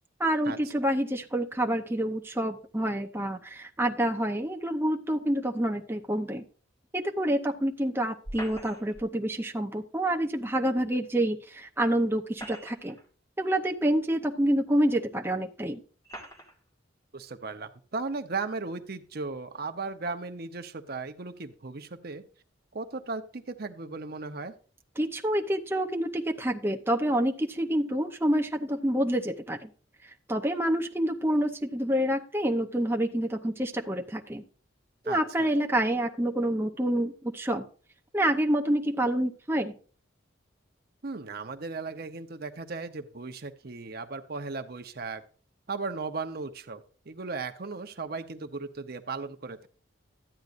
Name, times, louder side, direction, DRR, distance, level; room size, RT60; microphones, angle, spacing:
voice 1, 0.2-6.4 6.9-13.0 13.4-15.8 25.0-29.7 30.0-34.4 35.1-37.6 38.1-39.8, right 1 dB, 10° right, 3 dB, 0.7 m, -27 dB
sound 1, 8.2-9.1 10.8-10.9 12.1-13.1 13.9-14.0 15.0-15.1 16.0-16.6, equal, 20° left, 2.3 m, -43 dB
voice 2, 17.1-22.3 22.7-24.5 35.0-35.5 41.0-45.2 45.7-49.7, right 4 dB, 50° right, 7 dB, 0.8 m, -36 dB
13.0 x 9.4 x 2.5 m, 0.40 s
head